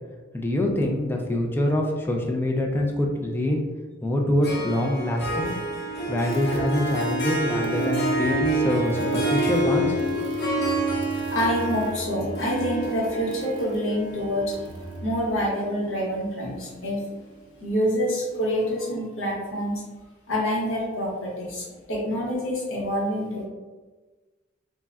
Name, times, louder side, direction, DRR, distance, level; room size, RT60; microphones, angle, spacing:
voice 1, 0.3-3.6 4.0-5.5 6.1-9.9, left 1 dB, 10° left, 1 dB, 0.3 m, -25 dB
Harp, 4.4-15.9, right 1 dB, 60° left, 0.6 m, -28 dB
sound 1, 5.9-15.3, right 1 dB, 80° right, 0.5 m, -42 dB
voice 2, 11.3-14.5 15.0-17.0 17.6-19.8 20.3-23.5, equal, 90° left, -4 dB, 0.9 m, -27 dB
3.5 x 2.1 x 2.3 m, 1.3 s
head